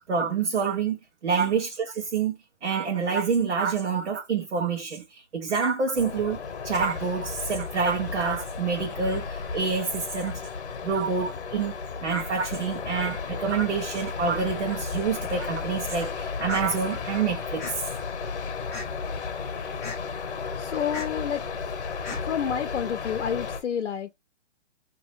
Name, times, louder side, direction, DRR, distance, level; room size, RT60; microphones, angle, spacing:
voice 1, 0.1-6.4 6.6-10.4 10.8-11.7 12.0-17.9 22.1-22.2, right 5 dB, 75° right, 1.2 m, -27 dB
sound 1, 5.9-23.6, left 5 dB, 50° left, 1.0 m, -34 dB
sound 2, 16.5-16.6 17.6-17.8 18.7-19.0 19.8-20.0 20.9-21.1 22.0-22.2, left 3 dB, 15° left, 0.6 m, -36 dB
voice 2, 20.6-21.4 21.9-24.1, left 8 dB, 75° left, 0.7 m, -30 dB
4.0 x 2.9 x 3.1 m
hypercardioid pair, 175°, 35 cm